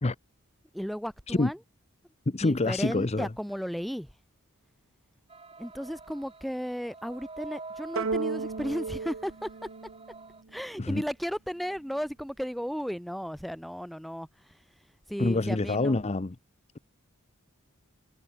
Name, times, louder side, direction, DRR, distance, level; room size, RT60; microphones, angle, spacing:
voice 1, 0.7-1.6 2.4-4.1 5.6-9.5 10.5-14.3 15.1-16.0, equal, ahead, 2.8 m, -34 dB
voice 2, 2.3-3.3 10.8-11.0 15.2-16.4, left 2 dB, 30° left, 0.7 m, -26 dB
sound 1, 5.3-10.4, right 3 dB, 25° right, 5.0 m, -47 dB
sound 2, 8.0-10.5, right 4 dB, 65° right, 0.8 m, -34 dB
head